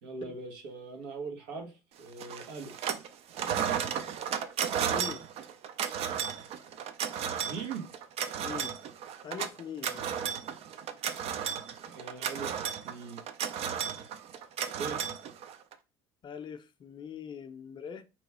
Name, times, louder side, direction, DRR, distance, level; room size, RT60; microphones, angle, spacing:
voice 1, 0.0-2.7 7.5-7.9 11.8-13.2 14.8-15.1, right 4 dB, 90° right, 1.0 m, -41 dB
sound 1, 2.2-3.1 3.3-15.7, right 8 dB, 55° right, 0.5 m, -34 dB
voice 2, 4.9-5.2 8.4-8.7 9.2-10.1 16.2-18.0, left 7 dB, 40° left, 0.5 m, -42 dB
3.0 x 2.3 x 4.2 m
supercardioid pair, 85°, 13 cm